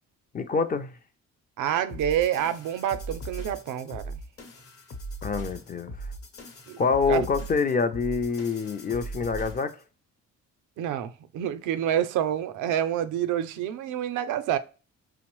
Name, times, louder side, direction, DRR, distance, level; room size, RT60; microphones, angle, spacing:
voice 1, 0.3-0.9 5.2-5.9 6.8-9.8, left 5 dB, 30° left, 0.4 m, -26 dB
voice 2, 1.6-4.2 6.7-6.8 7.1-7.5 10.8-14.6, right 10 dB, 80° right, 0.5 m, -28 dB
sound 1, 1.9-9.8, right 2 dB, 50° left, 0.8 m, -39 dB
5.1 x 2.0 x 3.0 m
cardioid pair, 90°, 30 cm